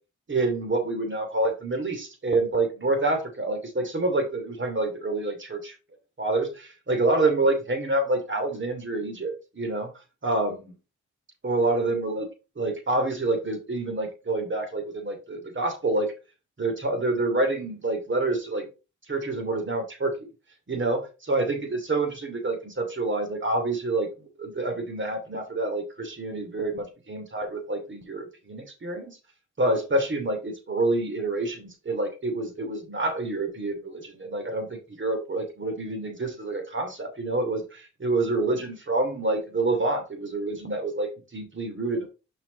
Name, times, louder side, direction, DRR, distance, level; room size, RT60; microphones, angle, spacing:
voice 1, 0.3-5.7 6.2-9.9 10.2-10.8 11.4-12.3 12.6-16.1 16.6-18.7 19.1-20.3 20.7-24.1 24.4-29.2 29.6-42.1, right 2 dB, 40° right, 4 dB, 2.7 m, -27 dB
5.7 x 4.9 x 4.1 m, 0.30 s
cardioid pair, 50°, 30 cm